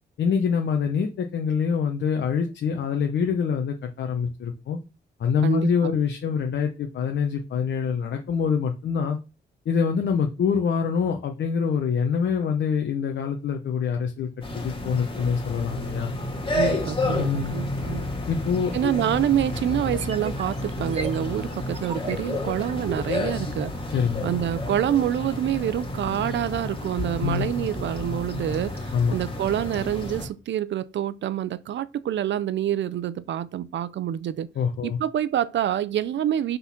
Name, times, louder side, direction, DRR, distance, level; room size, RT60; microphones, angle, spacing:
voice 1, 0.2-4.8 5.2-9.2 9.6-14.3 14.5-16.1 17.2-17.6 18.3-18.9 23.9-24.2 27.2-27.6 28.9-29.2 34.5-35.0, left 6 dB, 70° left, 1.0 m, -25 dB
voice 2, 5.4-6.0 16.5-18.1 18.7-23.7 24.2-34.5 34.8-36.6, right 10 dB, 75° right, 0.6 m, -27 dB
sound 1, 14.4-30.3, left 2 dB, 30° left, 2.2 m, -31 dB
sound 2, 19.8-23.8, right 3 dB, 35° right, 0.9 m, -37 dB
6.0 x 4.0 x 5.8 m
wide cardioid pair, 130°, 19 cm